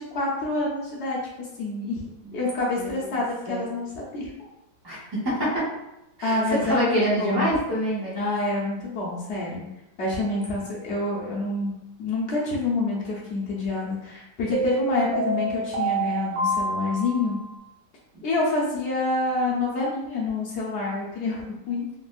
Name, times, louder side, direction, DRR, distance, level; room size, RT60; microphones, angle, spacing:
voice 1, 0.1-2.0 2.3-4.3 6.2-7.5 8.1-9.6 10.0-11.7 12.0-17.4 18.2-21.4 21.7-21.8, left 2 dB, 65° left, -4 dB, 0.7 m, -27 dB
voice 2, 5.2-5.7 6.2-8.2, right 1 dB, 40° right, -8 dB, 0.3 m, -25 dB
sound 1, 10.1-10.4 14.5-17.5, right 2 dB, 55° right, 1.6 m, -28 dB
3.4 x 2.2 x 2.3 m, 0.90 s
omnidirectional pair, 1.9 m